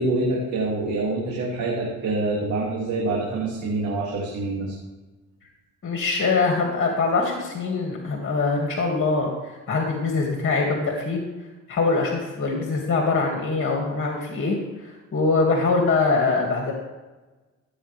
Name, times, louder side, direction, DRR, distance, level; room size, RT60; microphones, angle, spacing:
voice 1, 0.0-4.7, right 2 dB, 70° right, -4 dB, 2.5 m, -26 dB
voice 2, 5.8-11.2 11.7-16.7, left 3 dB, 45° left, 0 dB, 2.3 m, -23 dB
15.5 x 8.2 x 3.5 m, 1.2 s
cardioid pair, 90°, 30 cm